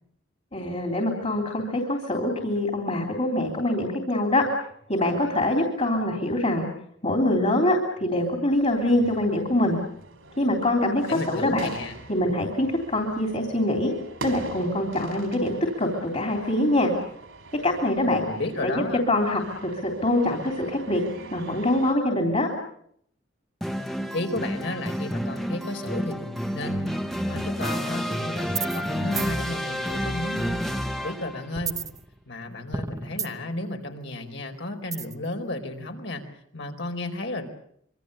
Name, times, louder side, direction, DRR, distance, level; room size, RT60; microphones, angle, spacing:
voice 1, 0.5-4.4 4.9-6.7 7.0-9.8 10.4-11.7 12.1-13.9 14.2-16.9 17.6-18.2 18.6-21.0 21.3-22.5, left 1 dB, 35° left, 1 dB, 3.3 m, -24 dB
sound 1, 8.5-21.9, right 3 dB, 80° right, 4.0 m, -43 dB
voice 2, 11.1-12.0 18.1-19.0 24.1-30.6 31.0-31.8 32.3-36.2 36.5-37.4, left 2 dB, 65° left, 5 dB, 4.3 m, -33 dB
sound 2, 23.6-31.5, equal, ahead, 1.4 m, -30 dB
sound 3, 28.5-28.9 29.2-29.3 31.5-32.4 32.7-33.6 34.9-35.3, right 5 dB, 15° right, 0.9 m, -32 dB
25.5 x 24.5 x 6.8 m, 0.69 s
head